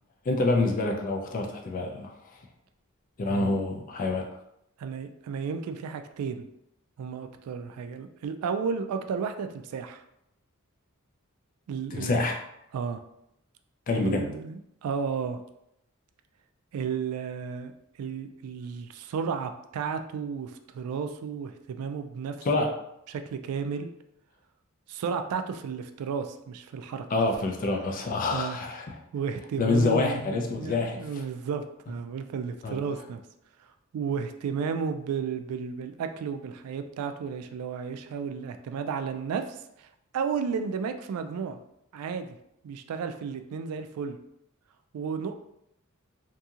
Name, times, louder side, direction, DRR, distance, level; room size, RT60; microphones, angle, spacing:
voice 1, 0.3-2.1 3.2-4.3 11.9-12.4 13.9-14.2 22.4-22.7 27.1-29.0 29.6-31.0 32.6-32.8, left 3 dB, 40° left, 2 dB, 0.4 m, -26 dB
voice 2, 4.8-6.5 7.0-10.0 11.7-12.2 12.7-13.0 14.0-15.4 16.7-17.7 18.0-22.5 23.1-23.9 24.9-27.0 28.3-28.6 29.1-33.2 33.9-39.9 40.1-41.6 41.9-42.3 42.6-44.2 44.9-45.3, right 6 dB, 85° right, 12 dB, 0.3 m, -33 dB
2.7 x 2.6 x 2.4 m, 0.80 s
head